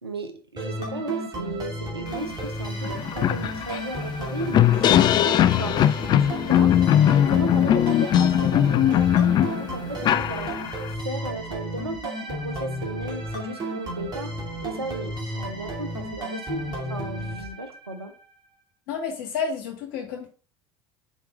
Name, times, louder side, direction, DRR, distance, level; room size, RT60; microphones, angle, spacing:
voice 1, 0.0-5.1 5.6-5.8 6.2-6.8 7.1-10.5 10.9-14.3 14.6-18.1, right 2 dB, 85° right, 0.8 m, -35 dB
sound 1, 0.6-18.1, right 1 dB, 30° right, 2.5 m, -33 dB
sound 2, 2.4-2.5 2.8-10.9, left 11 dB, 35° left, 0.3 m, -20 dB
voice 2, 18.9-20.3, left 6 dB, 60° left, 1.8 m, -30 dB
5.1 x 4.5 x 5.0 m
figure-of-eight pair, 65°, 13 cm